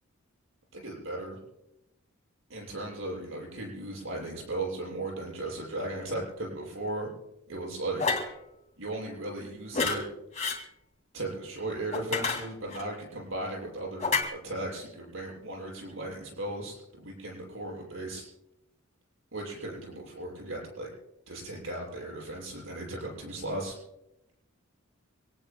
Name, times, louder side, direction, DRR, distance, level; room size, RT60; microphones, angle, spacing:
voice 1, 0.7-1.4 2.5-7.1 7.5-8.0 8.8-10.0 11.1-18.2 19.3-20.9 21.3-23.8, right 2 dB, 70° right, -2 dB, 6.6 m, -36 dB
sound 1, 8.0-8.3 9.7-10.0 10.3-10.6 11.9-12.8 14.0-14.2, left 4 dB, 35° left, 2.5 m, -28 dB
25.5 x 18.5 x 2.3 m, 0.87 s
head